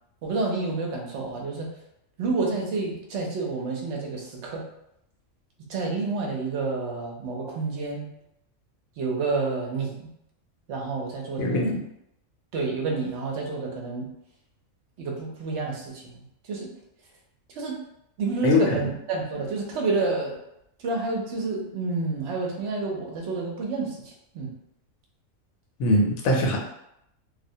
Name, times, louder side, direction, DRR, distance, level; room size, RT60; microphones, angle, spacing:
voice 1, 0.2-1.7 2.2-4.7 5.7-8.1 9.0-10.1 10.7-11.7 12.5-14.1 15.0-16.2 16.5-16.7 17.5-17.8 18.2-20.4 20.8-24.5, right 3 dB, 65° right, 0 dB, 0.8 m, -29 dB
voice 2, 11.4-11.8 18.4-18.6 25.8-26.6, left 1 dB, 80° left, 0 dB, 1.0 m, -21 dB
2.3 x 2.1 x 2.6 m, 0.78 s
omnidirectional pair, 1.4 m